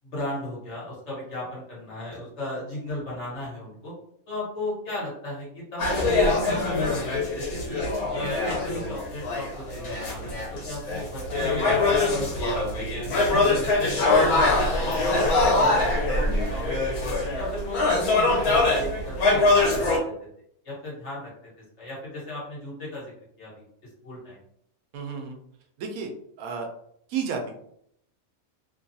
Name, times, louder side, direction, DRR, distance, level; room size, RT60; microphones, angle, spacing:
voice 1, 0.0-3.9 4.3-7.8 8.1-12.9 13.3-17.0 17.3-20.1 20.6-21.3 21.8-23.1 23.4-23.6 24.0-24.4, left 1 dB, 55° left, -6 dB, 1.4 m, -36 dB
sound 1, 5.8-20.0, left 2 dB, 85° left, 1.2 m, -23 dB
voice 2, 24.9-25.4 25.8-26.1 26.4-26.7 27.1-27.5, right 6 dB, 80° right, 3 dB, 1.0 m, -31 dB
2.9 x 2.3 x 2.6 m, 0.70 s
omnidirectional pair, 1.5 m